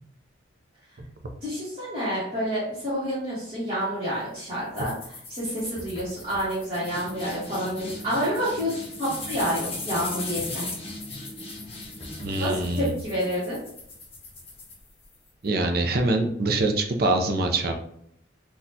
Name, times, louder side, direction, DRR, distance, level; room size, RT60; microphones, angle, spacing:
voice 1, 1.4-4.9 5.3-10.7 12.4-13.6, equal, 25° right, -11 dB, 1.3 m, -28 dB
sound 1, 4.7-15.3, left 2 dB, 30° left, 0.9 m, -38 dB
voice 2, 12.2-13.0 15.4-17.7, right 2 dB, 50° right, 4 dB, 0.5 m, -24 dB
4.1 x 2.3 x 2.7 m, 0.70 s
head